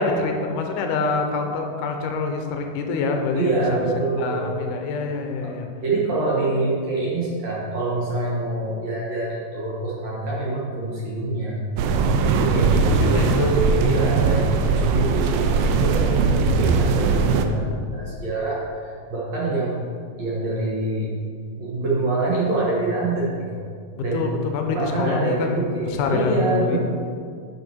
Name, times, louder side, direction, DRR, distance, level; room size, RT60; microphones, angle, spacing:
voice 1, 0.0-3.8 4.2-5.7 6.2-6.4 10.5-10.6 12.6-14.2 24.0-26.8, left 4 dB, 75° left, 3 dB, 2.0 m, -26 dB
voice 2, 3.4-4.5 5.4-5.5 5.8-11.6 12.3-19.8 20.2-21.1 21.6-23.6 24.0-24.3 24.7-26.8, right 2 dB, 60° right, -5 dB, 2.1 m, -25 dB
sound 1, 11.8-17.5, right 4 dB, 85° right, 2.4 m, -20 dB
9.7 x 6.3 x 4.5 m, 2.2 s
omnidirectional pair, 4.3 m